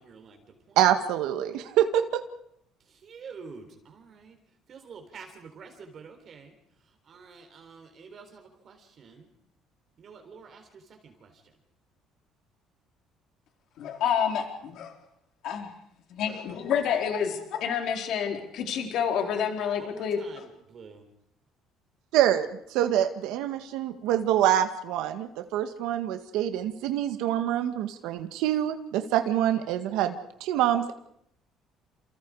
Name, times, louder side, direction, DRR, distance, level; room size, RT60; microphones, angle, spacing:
voice 1, 0.0-0.8 2.8-4.4 4.7-6.5 6.8-9.3 10.0-11.5 19.8-21.1, right 5 dB, 35° right, 5 dB, 3.8 m, -48 dB
voice 2, 0.7-2.2 22.1-30.9, right 11 dB, 85° right, 7 dB, 1.8 m, -26 dB
voice 3, 13.8-14.9 15.4-15.7 16.1-20.5, left 7 dB, 60° left, 3 dB, 4.3 m, -29 dB
30.0 x 28.5 x 4.9 m, 0.73 s
cardioid pair, 165°, 0 cm